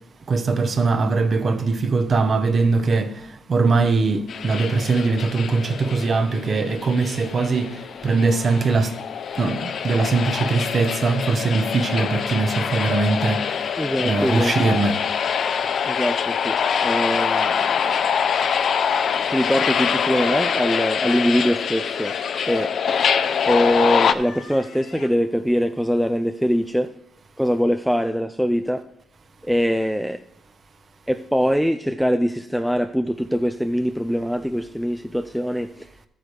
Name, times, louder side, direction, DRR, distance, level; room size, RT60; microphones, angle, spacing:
voice 1, 0.3-8.9 9.4-13.7 14.0-15.0, right 3 dB, 45° right, 1.0 m, -21 dB
sound 1, 4.3-24.1, left 7 dB, 60° left, 0.6 m, -24 dB
voice 2, 13.8-14.5 15.6-18.0 19.2-22.2 22.5-22.7 23.4-27.0 27.4-28.9 29.4-30.2 31.1-35.9, equal, ahead, 0.4 m, -23 dB
sound 2, 14.1-14.7 15.5-16.1 17.2-18.0 19.1-19.9 21.6-22.7 23.8-25.1, left 5 dB, 85° left, 1.6 m, -42 dB
13.5 x 8.9 x 3.3 m
cardioid pair, 90°, 0 cm